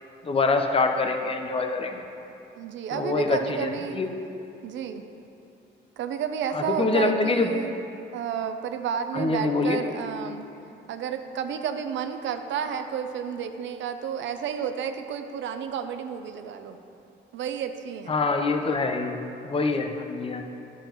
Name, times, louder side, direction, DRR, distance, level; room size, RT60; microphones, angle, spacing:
voice 1, 0.2-2.0 2.9-4.1 6.5-7.5 9.1-9.8 18.1-19.2 19.5-20.4, left 3 dB, 30° left, 5 dB, 0.7 m, -25 dB
voice 2, 2.6-4.0 4.6-5.0 6.0-7.7 8.1-10.5 10.9-16.8 17.3-18.2, right 8 dB, 70° right, 7 dB, 0.5 m, -31 dB
10.0 x 7.0 x 3.0 m, 2.9 s
cardioid pair, 90°, 20 cm